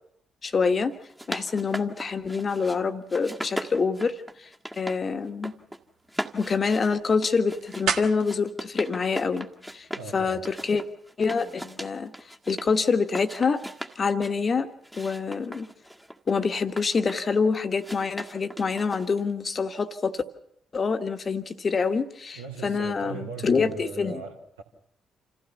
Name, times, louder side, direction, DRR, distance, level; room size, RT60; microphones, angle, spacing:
voice 1, 0.4-0.9 1.3-4.5 4.8-5.5 6.3-9.5 9.7-9.8 10.1-10.8 11.2-12.1 12.5-13.6 14.0-15.7 16.3-20.2 20.7-24.2, left 5 dB, 40° left, 1.5 m, -26 dB
sound 1, 0.9-2.8 3.1-5.0 5.3-5.8 6.1-10.1 10.4-12.7 13.0-14.4 14.8-17.3 17.8-19.3, equal, 5° right, 1.8 m, -38 dB
sound 2, 4.9-10.0, right 7 dB, 60° right, 1.5 m, -37 dB
voice 2, 9.9-10.5 22.3-24.6, right 4 dB, 80° right, 2.7 m, -38 dB
27.5 x 15.5 x 7.1 m
figure-of-eight pair, 40°, 0 cm